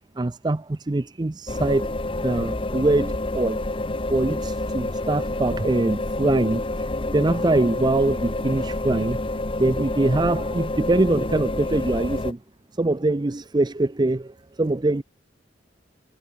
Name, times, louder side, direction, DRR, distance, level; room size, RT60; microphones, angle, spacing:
voice 1, 0.2-1.9 2.2-3.6 4.1-6.6 7.1-9.2 9.6-12.4 12.8-14.3 14.6-15.0, right 2 dB, 20° right, 0.5 m, -23 dB
sound 1, 1.5-12.3, left 2 dB, 30° left, 1.1 m, -28 dB
head